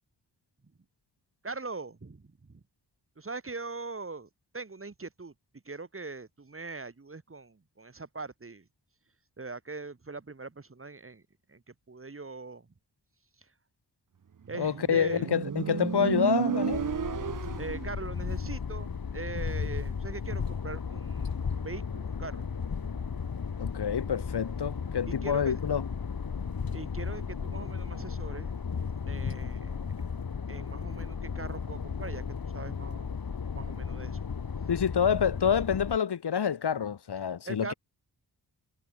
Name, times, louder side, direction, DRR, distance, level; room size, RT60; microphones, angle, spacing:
voice 1, 1.4-2.6 3.2-5.3 5.6-8.7 9.4-11.2 11.5-12.7 13.4-13.5 14.5-15.3 17.6-22.5 25.1-25.6 26.7-28.5 29.1-29.9 30.5-32.2 32.5-33.1 33.5-34.3 37.4-37.7, right 3 dB, 35° right, 6.0 m, -41 dB
voice 2, 14.5-16.9 23.6-25.9 34.7-37.7, left 7 dB, 75° left, 3.6 m, -27 dB
Motorcycle, 14.5-18.0, right 7 dB, 50° right, 1.2 m, -32 dB
sound 1, 16.7-36.0, left 6 dB, 60° left, 6.2 m, -35 dB
wide cardioid pair, 100°, 40 cm